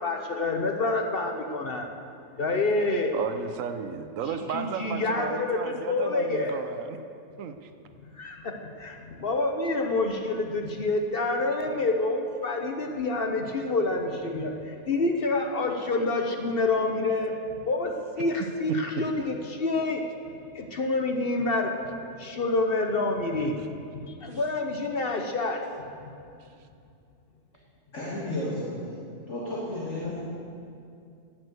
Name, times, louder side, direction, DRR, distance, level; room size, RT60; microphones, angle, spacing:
voice 1, 0.0-1.9 2.4-3.1 4.5-5.6 5.9-6.7 8.0-17.3 17.6-20.0 20.5-25.6 26.0-26.1, left 2 dB, 45° left, 3 dB, 1.0 m, -28 dB
voice 2, 3.1-7.0 7.4-7.6 23.6-23.7, right 7 dB, 70° right, 8 dB, 1.1 m, -34 dB
voice 3, 27.9-29.0 29.3-30.3, left 1 dB, 60° left, -6 dB, 2.2 m, -33 dB
12.5 x 7.6 x 8.0 m, 2.5 s
omnidirectional pair, 1.4 m